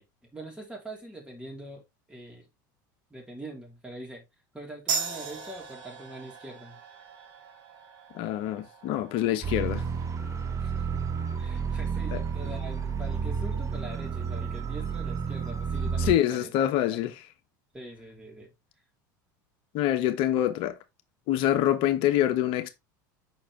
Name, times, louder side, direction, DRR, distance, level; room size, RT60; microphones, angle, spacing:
voice 1, 0.0-2.5 3.1-4.3 4.5-6.8 10.6-10.9 11.4-16.5 16.8-17.0 17.7-18.5, right 1 dB, 10° right, 3.4 m, -43 dB
sound 1, 4.9-12.0, right 5 dB, 45° right, 3.3 m, -39 dB
voice 2, 8.1-9.8 12.1-12.2 16.0-17.1 19.7-20.8 21.3-22.7, left 12 dB, 60° left, 1.2 m, -25 dB
sound 2, 9.4-16.1, right 6 dB, 30° right, 1.2 m, -31 dB
6.2 x 4.5 x 3.4 m
hypercardioid pair, 90°, 10 cm